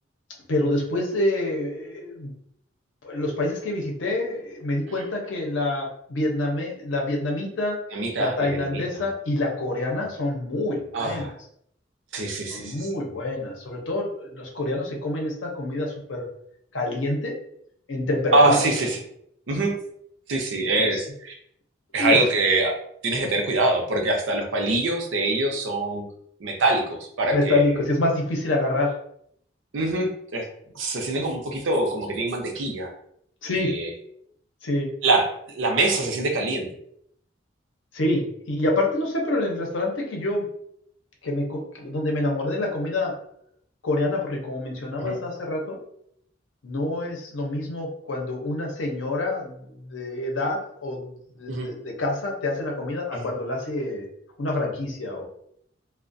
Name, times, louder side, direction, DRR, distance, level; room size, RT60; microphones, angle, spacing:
voice 1, 0.5-2.3 3.0-7.8 8.2-11.3 12.5-16.3 16.7-17.4 17.9-18.6 20.8-21.0 22.0-22.2 27.3-28.9 33.4-33.7 34.6-34.9 37.9-40.5 41.2-43.1 43.8-45.8 46.6-54.1 54.4-55.3, left 2 dB, 80° left, 0 dB, 0.7 m, -27 dB
voice 2, 7.9-9.1 10.9-11.3 12.1-12.9 18.3-19.0 19.5-19.7 20.3-21.3 21.9-22.7 23.0-26.0 26.4-27.7 29.7-30.5 30.7-32.9 33.5-33.9 35.0-35.3 35.5-36.7 45.0-45.2 51.5-51.7 53.1-53.3, right 2 dB, 75° right, 2 dB, 0.5 m, -24 dB
2.3 x 2.0 x 2.5 m, 0.70 s
head